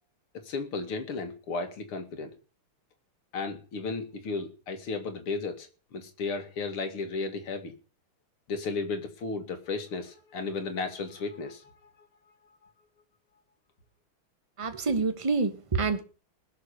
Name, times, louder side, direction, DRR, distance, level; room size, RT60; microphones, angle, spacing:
voice 1, 0.3-2.3 3.3-7.7 8.5-11.9, left 4 dB, 85° left, 3.0 m, -34 dB
voice 2, 14.6-16.0, right 4 dB, 20° right, 1.0 m, -27 dB
20.0 x 6.7 x 6.6 m
omnidirectional pair, 2.3 m